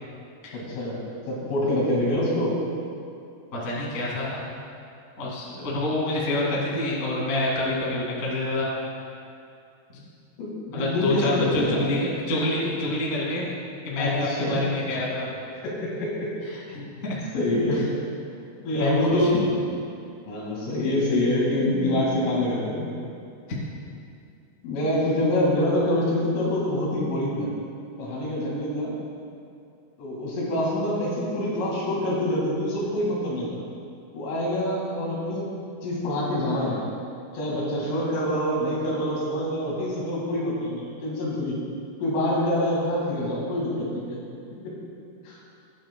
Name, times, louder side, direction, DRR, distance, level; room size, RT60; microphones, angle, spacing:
voice 1, 0.5-1.0 1.3-2.6 5.5-5.6 10.4-11.9 14.0-14.6 15.6-16.3 17.3-17.9 18.6-19.8 20.3-22.9 24.6-27.5 28.0-29.0 30.0-33.6 34.1-35.6 35.8-36.8 37.3-41.6 42.0-44.2 44.6-44.7 45.3-45.4, left 1 dB, 90° left, -5 dB, 4.6 m, -26 dB
voice 2, 3.5-4.4 5.2-8.7 9.9-10.0 10.7-13.5 13.8-15.3 16.5-17.2 18.7-19.3 23.5-23.6, left 2 dB, 45° left, -5 dB, 1.0 m, -27 dB
20.0 x 7.5 x 2.2 m, 2.5 s
omnidirectional pair, 5.5 m